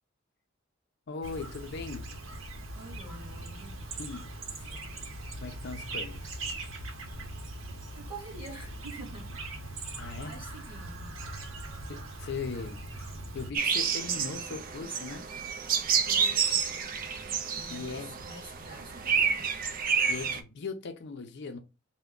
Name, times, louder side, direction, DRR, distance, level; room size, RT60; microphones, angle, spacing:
voice 1, 1.1-2.1 4.0-4.3 4.5-4.8 5.4-6.4 10.0-10.3 11.9-15.3 17.7-18.2 20.1-21.6, left 4 dB, 55° left, 0.5 m, -39 dB
Chirp tweet, 1.2-13.5, right 2 dB, 70° right, 0.8 m, -41 dB
voice 2, 2.7-3.7 4.7-4.9 7.9-9.3 10.1-11.2 16.0-16.9 17.5-19.7, right 2 dB, 25° right, 1.8 m, -47 dB
sound 1, 13.5-20.4, right 6 dB, 45° right, 0.5 m, -29 dB
3.4 x 2.1 x 3.6 m
head